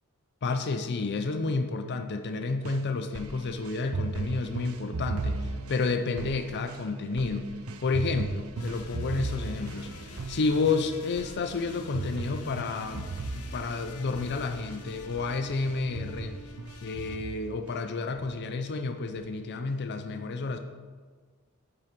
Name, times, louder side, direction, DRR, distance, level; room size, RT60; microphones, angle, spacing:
voice 1, 0.4-7.5 7.8-16.4 16.8-20.6, left 3 dB, 50° left, 6 dB, 0.5 m, -30 dB
sound 1, 2.6-14.8 15.2-15.4 15.7-17.8 18.2-18.7 19.2-19.3, right 3 dB, 65° right, 0.6 m, -37 dB
sound 2, 8.6-17.2, left 2 dB, 85° left, 0.8 m, -46 dB
11.0 x 5.6 x 5.2 m, 1.5 s
head